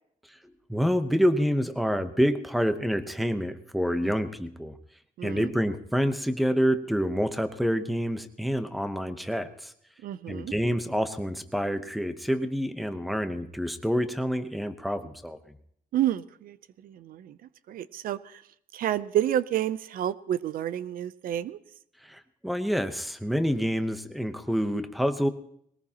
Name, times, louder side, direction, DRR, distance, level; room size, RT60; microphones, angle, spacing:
voice 1, 0.7-4.8 5.2-9.7 10.3-15.4 22.0-25.3, equal, ahead, 10 dB, 0.9 m, -27 dB
voice 2, 5.2-5.5 10.0-10.5 15.9-16.6 16.8-17.4 17.7-18.4 18.7-21.6, right 11 dB, 75° right, 17 dB, 0.6 m, -29 dB
21.0 x 18.5 x 2.9 m, 0.69 s
cardioid pair, 160°, 15 cm